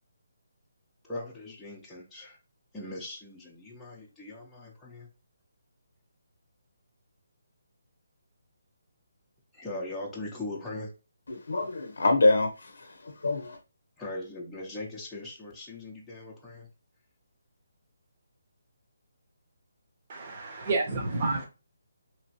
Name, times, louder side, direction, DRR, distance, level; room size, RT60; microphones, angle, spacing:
voice 1, 1.0-2.4 2.7-5.1 9.5-10.9 14.0-16.7, left 2 dB, 5° left, -6 dB, 0.7 m, -40 dB
voice 2, 11.3-13.6, left 2 dB, 75° left, 5 dB, 0.6 m, -26 dB
voice 3, 20.1-21.5, right 3 dB, 40° right, 2 dB, 1.0 m, -30 dB
3.0 x 2.7 x 2.8 m, 0.31 s
hypercardioid pair, 160°, 0 cm